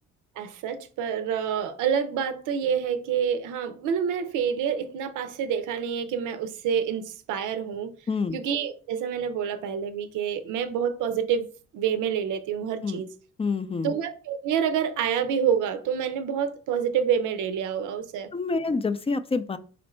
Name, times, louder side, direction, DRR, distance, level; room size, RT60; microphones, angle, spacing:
voice 1, 0.4-7.9 8.3-11.5 11.7-13.1 13.8-18.3, right 7 dB, 85° right, 0.6 m, -27 dB
voice 2, 8.1-8.4 12.8-13.0 13.4-13.9 18.3-19.6, left 4 dB, 20° left, 0.3 m, -27 dB
4.3 x 2.5 x 4.2 m
cardioid pair, 90°, 30 cm